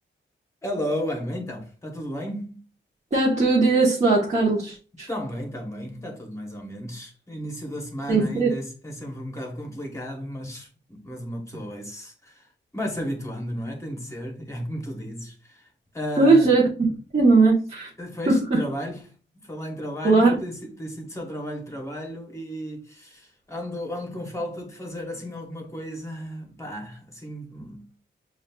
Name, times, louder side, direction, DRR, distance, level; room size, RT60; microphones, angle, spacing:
voice 1, 0.6-2.6 5.1-15.7 15.9-16.5 18.0-19.0 19.3-27.8, equal, 15° left, 1.0 m, -34 dB
voice 2, 3.1-5.1 8.1-8.5 16.2-17.9 18.3-18.6 20.0-20.3, right 3 dB, 35° right, 1.0 m, -19 dB
7.0 x 2.5 x 2.3 m
wide cardioid pair, 175°, 20 cm